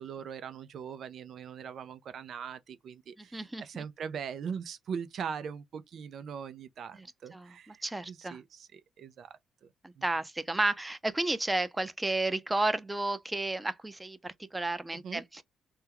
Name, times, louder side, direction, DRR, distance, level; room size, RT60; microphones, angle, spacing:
voice 1, 0.0-9.4 10.0-10.1 14.9-15.2, right 7 dB, 60° right, 0.5 m, -41 dB
voice 2, 3.2-3.8 6.9-8.4 9.8-15.4, right 2 dB, 15° right, 0.6 m, -32 dB
3.5 x 2.2 x 2.9 m
cardioid pair, 90°, 0 cm